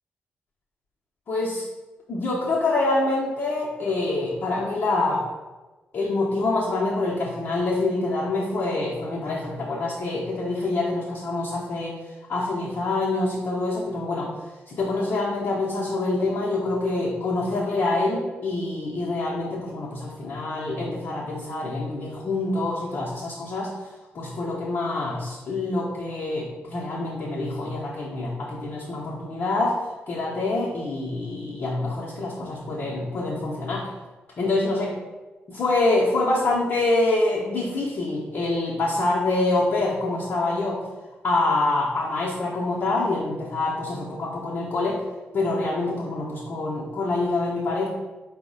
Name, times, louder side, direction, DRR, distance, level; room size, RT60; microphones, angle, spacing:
voice 1, 1.3-1.6 2.1-5.2 5.9-12.0 12.3-14.3 14.7-23.7 24.1-29.8 30.1-33.9 34.4-34.9 35.5-40.8 41.2-45.0 45.3-47.9, left 2 dB, 55° left, -5 dB, 0.7 m, -26 dB
4.0 x 2.1 x 3.9 m, 1.2 s
hypercardioid pair, 40°, 5 cm